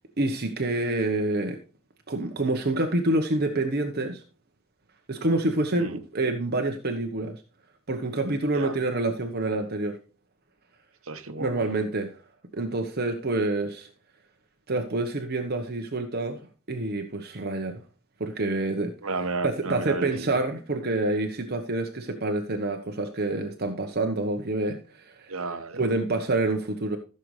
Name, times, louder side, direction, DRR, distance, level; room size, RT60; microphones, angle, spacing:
voice 1, 0.2-1.6 2.1-4.2 5.1-7.4 7.9-10.0 11.4-12.1 12.5-13.9 14.7-16.4 16.7-17.8 18.2-18.9 19.4-25.4 25.8-27.0, right 2 dB, 45° right, 1.1 m, -27 dB
voice 2, 11.1-11.5 19.0-20.3 25.3-25.8, right 3 dB, 65° right, 1.2 m, -32 dB
15.0 x 6.8 x 3.2 m
head